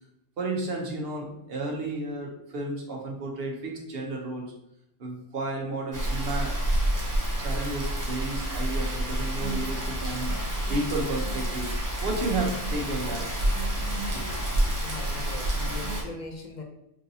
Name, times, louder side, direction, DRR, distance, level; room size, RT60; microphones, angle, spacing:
voice 1, 0.4-4.5 5.0-6.6 7.2-13.6 14.1-14.3, right 2 dB, 60° right, 0 dB, 0.9 m, -32 dB
Rain, 5.9-16.0, right 1 dB, 25° right, 0.5 m, -28 dB
voice 2, 14.8-16.6, left 3 dB, 60° left, 2 dB, 0.4 m, -39 dB
3.8 x 2.6 x 2.7 m, 0.80 s
omnidirectional pair, 1.2 m